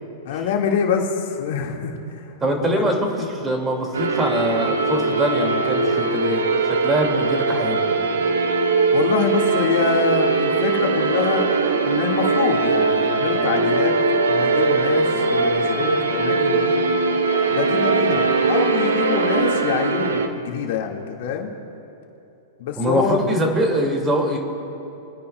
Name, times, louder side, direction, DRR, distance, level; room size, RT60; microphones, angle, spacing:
voice 1, 0.3-2.2 2.8-2.9 8.9-11.5 11.9-13.9 14.3-16.8 17.5-21.5 22.6-23.2, left 7 dB, 65° left, 1 dB, 1.8 m, -25 dB
voice 2, 2.4-2.9 3.3-7.8 22.8-24.4, right 1 dB, 15° right, 1 dB, 2.2 m, -23 dB
sound 1, 3.9-20.3, right 3 dB, 90° right, 0.9 m, -20 dB
23.5 x 10.0 x 2.3 m, 2.9 s
hypercardioid pair, 120°, 0 cm